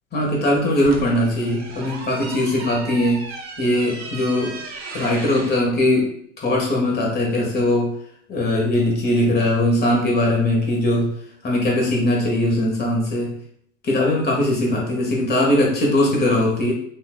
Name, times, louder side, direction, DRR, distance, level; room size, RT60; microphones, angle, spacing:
voice 1, 0.1-3.3 3.6-4.5 4.9-6.1 6.4-7.9 8.3-11.1 11.4-13.3 13.8-16.7, left 1 dB, 25° left, -1 dB, 1.7 m, -20 dB
sound 1, 0.5-5.6, right 4 dB, 45° right, 1.2 m, -36 dB
5.8 x 3.1 x 2.4 m, 0.64 s
hypercardioid pair, 85°, 38 cm